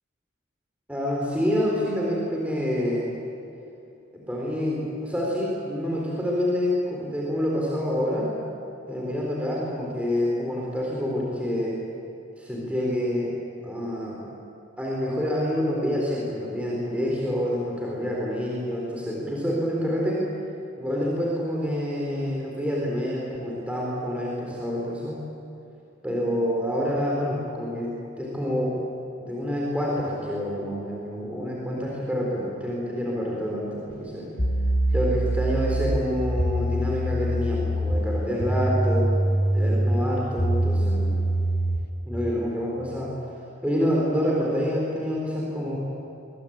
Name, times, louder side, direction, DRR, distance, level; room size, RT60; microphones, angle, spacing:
voice 1, 0.9-3.1 4.1-8.3 8.9-11.8 12.4-13.3 13.6-14.2 14.8-20.2 20.8-25.2 26.0-28.8 29.2-34.3 34.9-39.1 39.5-41.1 42.1-43.1 43.6-45.8, equal, 5° right, -3 dB, 4.2 m, -27 dB
sound 1, 33.9-34.0 34.4-41.9, right 1 dB, 50° left, 2.8 m, -24 dB
23.5 x 22.0 x 8.9 m, 2.8 s
head